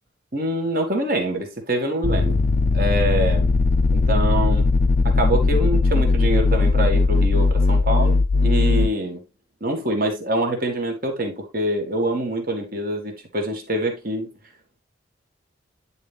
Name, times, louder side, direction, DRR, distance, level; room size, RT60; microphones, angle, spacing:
voice 1, 0.3-2.4 2.7-3.5 3.9-4.7 5.0-9.2 9.6-14.3, right 1 dB, 50° right, 1.9 m, -25 dB
sound 1, 2.0-8.9, left 3 dB, 45° left, 0.4 m, -18 dB
10.0 x 4.3 x 3.4 m
head